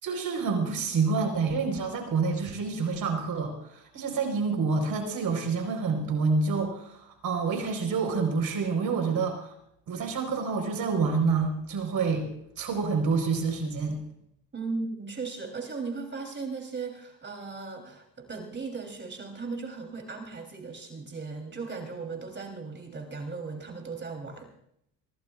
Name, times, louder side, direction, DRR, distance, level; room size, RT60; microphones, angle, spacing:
voice 1, 0.0-9.5 9.9-12.3 12.6-14.0, right 4 dB, 50° right, 4 dB, 4.3 m, -28 dB
voice 2, 14.5-24.5, right 4 dB, 25° right, 3 dB, 3.4 m, -37 dB
24.0 x 17.0 x 2.4 m, 0.74 s
supercardioid pair, 95°, 43 cm